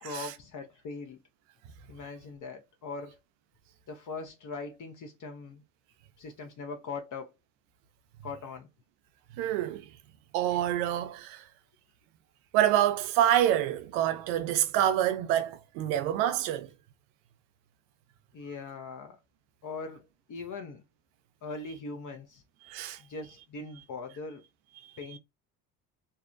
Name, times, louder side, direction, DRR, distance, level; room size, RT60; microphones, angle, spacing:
voice 1, 0.0-1.2 1.9-3.2 3.9-5.6 6.2-7.3 8.2-8.7 10.4-10.5 18.3-19.2 19.6-20.8 21.4-22.4 23.0-24.4 25.0-25.2, left 4 dB, 45° left, 0.7 m, -41 dB
voice 2, 9.4-9.9 10.3-11.4 12.5-16.7 22.6-23.0, right 11 dB, 80° right, 0.6 m, -27 dB
2.6 x 2.1 x 2.5 m
hypercardioid pair, 60°, 44 cm